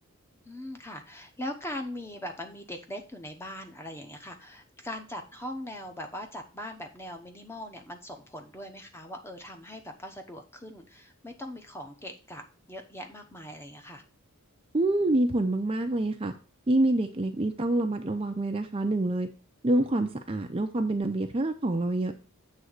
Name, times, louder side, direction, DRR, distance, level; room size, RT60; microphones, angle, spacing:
voice 1, 0.4-14.0, left 1 dB, 10° left, 4 dB, 0.9 m, -40 dB
voice 2, 14.7-16.3 16.7-19.3 19.6-22.1, right 1 dB, 25° right, 5 dB, 0.5 m, -26 dB
7.8 x 3.4 x 6.5 m, 0.36 s
head